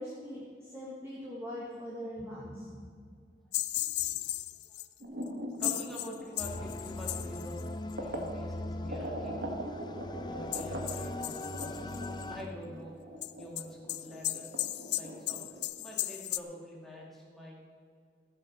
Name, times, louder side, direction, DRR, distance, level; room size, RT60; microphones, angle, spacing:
voice 1, 0.0-2.8, equal, 15° right, -6 dB, 1.7 m, -41 dB
sound 1, 3.5-4.9 5.2-5.3 5.6-7.9 10.5-12.2 13.2-16.4, left 15 dB, 80° left, 0.4 m, -35 dB
voice 2, 4.2-4.8 5.6-9.5 10.3-17.5, equal, ahead, -4 dB, 2.4 m, -47 dB
sound 2, 5.0-8.3 8.8-15.6, equal, 70° right, 1.7 m, -42 dB
sound 3, 6.4-12.4, left 2 dB, 25° left, 0.5 m, -40 dB
14.5 x 7.7 x 6.5 m, 2.1 s
head